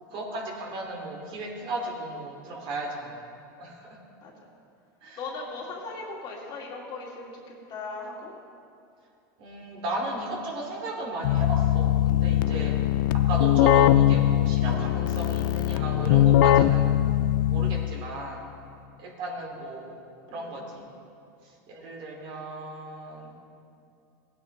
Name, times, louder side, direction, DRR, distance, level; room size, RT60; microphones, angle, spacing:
voice 1, 0.1-3.2 3.6-3.9 5.0-5.2 9.4-12.7 13.3-16.9 17.5-18.4 19.0-20.0 20.3-20.9 21.7-23.3, right 1 dB, 50° right, -1 dB, 2.6 m, -35 dB
voice 2, 5.2-8.3 20.3-20.6, left 3 dB, 40° left, -2 dB, 2.5 m, -38 dB
Keyboard (musical), 11.2-18.1, left 12 dB, 75° left, 0.4 m, -21 dB
17.0 x 9.1 x 3.3 m, 2.5 s
supercardioid pair, 115°, 11 cm